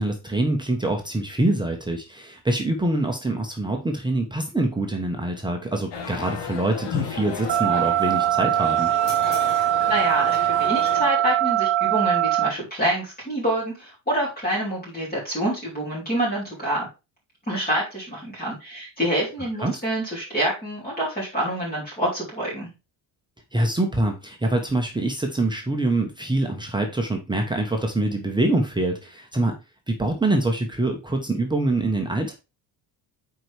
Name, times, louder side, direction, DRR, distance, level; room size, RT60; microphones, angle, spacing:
voice 1, 0.0-8.9 19.6-19.8 23.5-29.5 29.9-32.3, right 2 dB, 10° right, 2 dB, 1.1 m, -25 dB
sound 1, 5.9-11.1, left 6 dB, 75° left, 1.9 m, -33 dB
sound 2, 7.5-12.5, right 14 dB, 70° right, 0.8 m, -22 dB
voice 2, 9.9-16.9 17.5-22.7, right 1 dB, 20° left, -6 dB, 3.9 m, -27 dB
8.6 x 4.7 x 3.4 m, 0.27 s
cardioid pair, 145°, 44 cm